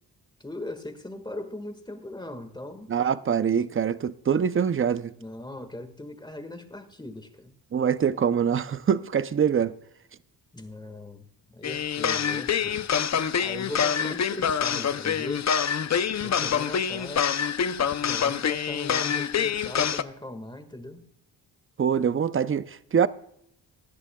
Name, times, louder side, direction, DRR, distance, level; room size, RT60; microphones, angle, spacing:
voice 1, 0.4-2.9 5.1-7.5 10.5-12.9 13.4-15.5 16.2-17.3 18.0-21.0, left 1 dB, 10° left, 1.7 m, -39 dB
voice 2, 2.9-5.1 7.7-9.7 21.8-23.1, right 7 dB, 30° right, 0.6 m, -24 dB
sound 1, 11.6-20.0, left 7 dB, 40° left, 0.6 m, -26 dB
18.5 x 11.0 x 2.3 m
cardioid pair, 85°, 43 cm